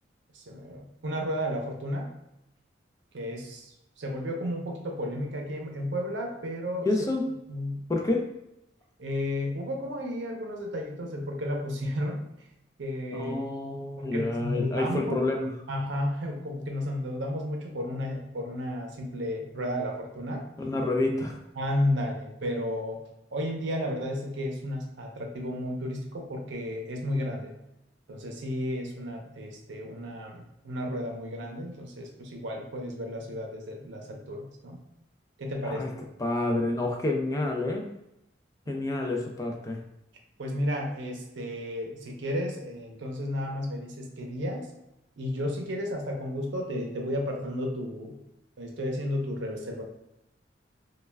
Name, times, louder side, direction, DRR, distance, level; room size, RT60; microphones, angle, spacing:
voice 1, 0.3-2.1 3.1-6.9 7.5-7.8 9.0-12.2 12.8-13.3 14.0-15.2 15.7-20.4 21.5-23.0 23.3-27.5 28.1-34.8 35.4-35.8 38.7-38.8 40.4-44.7 45.2-48.2 48.6-49.8, equal, 75° right, 1 dB, 0.5 m, -33 dB
voice 2, 6.8-7.3 7.9-8.2 13.1-15.5 20.6-21.4 35.6-35.9 36.2-37.8 38.7-39.8, left 2 dB, 20° left, 1 dB, 0.3 m, -28 dB
2.2 x 2.2 x 3.2 m, 0.86 s
head